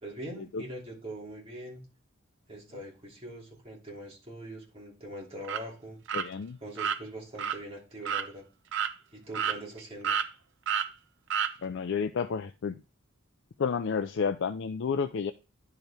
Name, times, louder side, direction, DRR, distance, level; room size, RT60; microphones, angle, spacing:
voice 1, 0.0-1.8 2.5-6.0 6.6-8.4 9.1-10.2, right 1 dB, 30° right, -3 dB, 2.9 m, -42 dB
sound 1, 5.4-5.6 6.1-6.3 6.8-7.0 7.4-7.6 8.1-8.3 8.7-8.9 9.3-9.8 10.0-10.3 10.7-10.9 11.3-11.5, right 8 dB, 65° right, 0.6 m, -29 dB
voice 2, 6.1-6.6 11.6-12.8 13.6-15.3, left 6 dB, 65° left, 9 dB, 0.4 m, -31 dB
10.5 x 4.6 x 3.4 m, 0.31 s
head